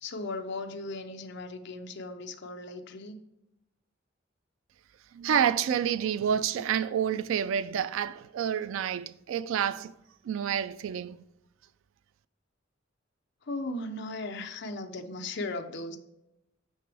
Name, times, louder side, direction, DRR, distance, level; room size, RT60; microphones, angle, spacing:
voice 1, 0.0-3.2 13.5-16.0, left 2 dB, 60° left, 0.7 m, -37 dB
voice 2, 5.1-9.9 10.2-11.2, right 8 dB, 85° right, 0.3 m, -28 dB
6.4 x 5.9 x 3.4 m
head